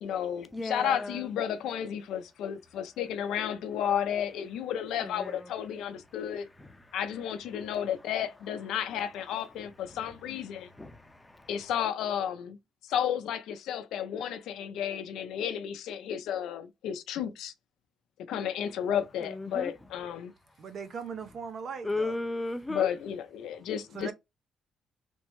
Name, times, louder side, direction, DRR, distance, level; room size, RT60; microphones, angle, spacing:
voice 1, 0.0-6.5 6.9-10.7 11.5-12.6 12.8-17.5 18.3-20.3 22.7-24.1, left 9 dB, 85° left, 0.5 m, -32 dB
voice 2, 0.5-1.3 5.0-5.5 6.6-6.7 10.8-11.5 19.2-19.7 21.8-22.9, left 2 dB, 15° left, 0.6 m, -35 dB
voice 3, 20.6-22.2 23.9-24.1, right 6 dB, 55° right, 0.7 m, -39 dB
3.5 x 2.0 x 3.0 m
cardioid pair, 90°, 0 cm